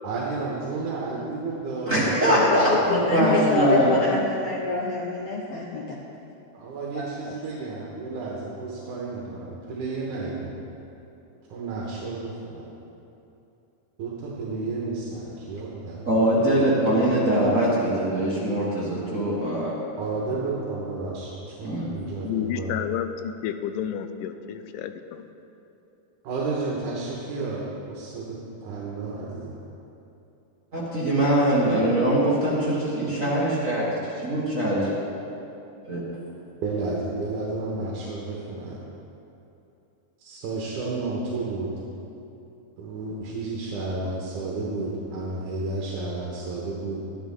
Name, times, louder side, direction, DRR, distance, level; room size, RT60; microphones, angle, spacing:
voice 1, 0.0-2.9 6.5-10.6 11.5-12.7 14.0-16.8 20.0-22.7 26.2-29.5 36.6-38.8 40.2-41.7 42.8-47.0, right 3 dB, 75° right, -4 dB, 2.6 m, -32 dB
voice 2, 1.9-4.0 16.1-19.8 21.6-21.9 30.7-34.9 35.9-36.0, right 1 dB, 40° right, -7 dB, 1.1 m, -22 dB
voice 3, 2.9-6.0 6.9-7.3, left 3 dB, 70° left, -2 dB, 1.5 m, -27 dB
voice 4, 22.2-25.3, left 9 dB, 90° left, 9 dB, 2.2 m, -30 dB
13.5 x 11.0 x 3.6 m, 2.8 s
omnidirectional pair, 3.7 m